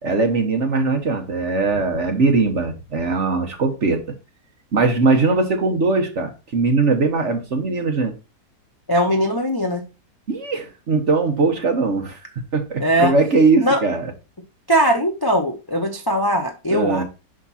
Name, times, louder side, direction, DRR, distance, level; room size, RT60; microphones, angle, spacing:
voice 1, 0.0-4.0 4.7-8.1 10.3-12.2 12.5-14.1 16.7-17.0, right 3 dB, 50° right, 1.3 m, -20 dB
voice 2, 8.9-9.8 12.8-13.1 13.6-13.8 14.7-17.0, equal, 25° left, 0.5 m, -20 dB
6.0 x 5.1 x 4.1 m
omnidirectional pair, 1.8 m